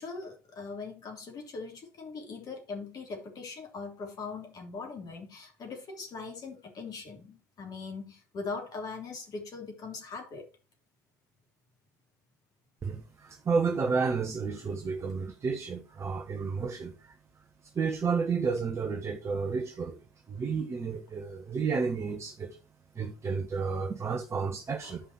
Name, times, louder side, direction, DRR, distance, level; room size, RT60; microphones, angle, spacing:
voice 1, 0.0-10.4 24.8-24.9, left 4 dB, 45° left, 3.4 m, -41 dB
voice 2, 12.8-17.1 17.7-20.0 20.3-22.6 22.9-25.0, right 5 dB, 30° right, 1.3 m, -31 dB
10.5 x 5.5 x 4.5 m
figure-of-eight pair, 60°, 9 cm